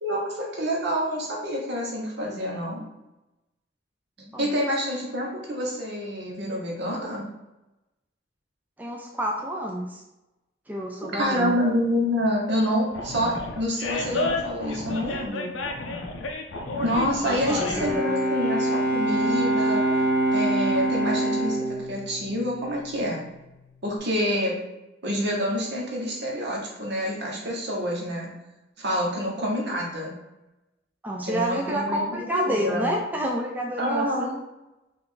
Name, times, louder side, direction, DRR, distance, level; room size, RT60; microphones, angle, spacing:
voice 1, 0.0-2.8 4.4-7.2 11.0-15.5 16.8-19.8 20.3-23.2 23.8-24.6 25.0-28.3 28.8-30.1 31.2-32.9 33.8-34.3, equal, 65° right, -2 dB, 1.1 m, -27 dB
voice 2, 4.2-4.5 8.8-10.0 10.7-11.5 17.2-17.9 31.0-34.4, equal, 10° right, 0 dB, 0.4 m, -29 dB
Animal, 12.9-18.0, left 2 dB, 90° left, 0.5 m, -31 dB
Bowed string instrument, 17.4-23.2, right 1 dB, 15° left, 1.2 m, -25 dB
4.5 x 2.5 x 3.7 m, 0.96 s
head